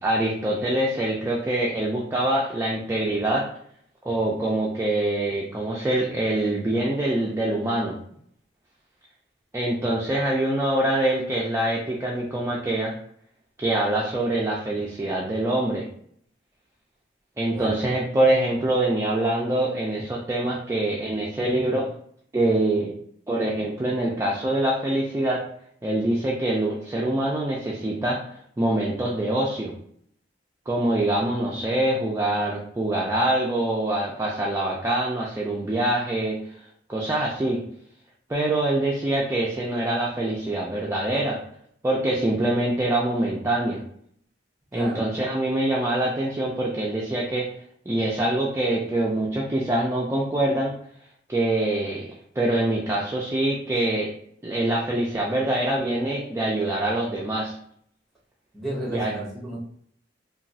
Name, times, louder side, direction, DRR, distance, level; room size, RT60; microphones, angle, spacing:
voice 1, 0.0-3.5 4.0-8.0 9.5-12.9 13.6-15.8 17.4-21.9 22.3-22.9 23.3-25.4 25.8-28.2 28.6-29.7 30.7-36.4 36.9-37.6 38.3-41.4 41.8-43.8 44.7-47.5 47.9-50.7 51.3-52.0 52.4-54.1 54.4-57.6 58.9-59.1, right 1 dB, 15° right, -4 dB, 0.3 m, -24 dB
voice 2, 44.7-45.1 58.5-59.6, right 1 dB, ahead, -5 dB, 0.9 m, -32 dB
3.0 x 2.3 x 2.6 m, 0.65 s
head